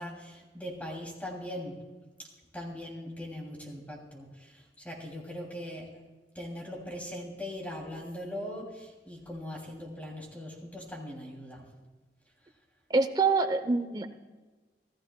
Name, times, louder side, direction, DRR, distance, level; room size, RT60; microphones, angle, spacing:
voice 1, 0.0-1.8 2.5-5.9 6.3-11.6, left 1 dB, 10° left, -1 dB, 2.8 m, -40 dB
voice 2, 12.9-14.1, right 4 dB, 25° right, 8 dB, 0.8 m, -25 dB
26.5 x 14.5 x 2.3 m, 1.3 s
head